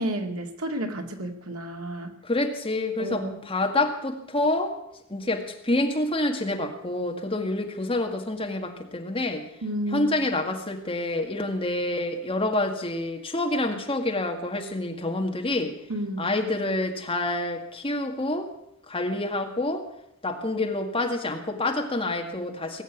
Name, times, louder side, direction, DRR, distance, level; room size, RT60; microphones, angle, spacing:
voice 1, 0.0-2.1 3.0-3.3 9.6-10.2 15.9-16.3, right 1 dB, 90° right, 4 dB, 2.2 m, -31 dB
voice 2, 2.2-4.8 5.1-9.4 9.9-15.7 16.2-18.5 18.9-19.9 20.2-22.8, left 2 dB, 25° left, 3 dB, 2.0 m, -27 dB
19.0 x 8.1 x 9.3 m, 0.79 s
head